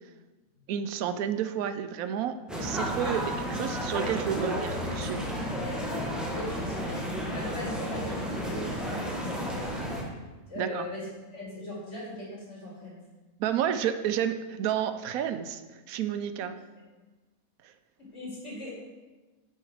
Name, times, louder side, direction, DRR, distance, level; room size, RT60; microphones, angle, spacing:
voice 1, 0.7-5.2 10.6-10.8 13.4-16.6 17.6-17.7, right 9 dB, 90° right, 10 dB, 1.0 m, -31 dB
sound 1, 2.5-10.0, equal, ahead, 1.0 m, -32 dB
voice 2, 5.5-9.8 10.5-13.0 16.4-16.5 18.1-18.7, left 1 dB, 55° left, -6 dB, 2.8 m, -40 dB
8.9 x 4.5 x 4.7 m, 1.2 s
omnidirectional pair, 1.5 m